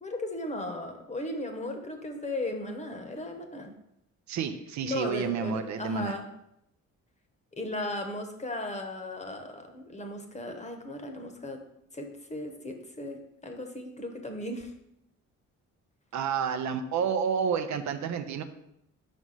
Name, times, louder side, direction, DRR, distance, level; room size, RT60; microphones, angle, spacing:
voice 1, 0.0-3.7 4.9-6.3 7.6-11.6 11.9-14.7, left 1 dB, 25° left, 4 dB, 1.0 m, -36 dB
voice 2, 4.3-6.2 16.1-18.4, right 6 dB, 65° right, 8 dB, 0.6 m, -30 dB
5.2 x 4.2 x 4.8 m, 0.79 s
cardioid pair, 90°, 30 cm